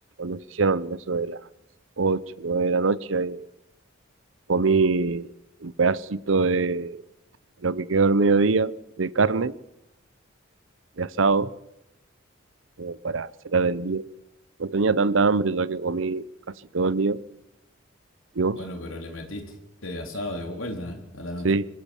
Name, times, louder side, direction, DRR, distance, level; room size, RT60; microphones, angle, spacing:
voice 1, 0.2-1.4 2.0-3.4 4.5-5.3 5.6-7.0 7.6-9.5 11.0-11.5 12.8-14.1 14.6-16.2 16.7-17.2 18.4-18.6 21.4-21.7, right 4 dB, 75° right, 19 dB, 0.8 m, -23 dB
voice 2, 18.5-19.6 19.8-21.5, left 1 dB, 85° left, 4 dB, 3.6 m, -34 dB
25.0 x 16.5 x 7.2 m, 0.91 s
head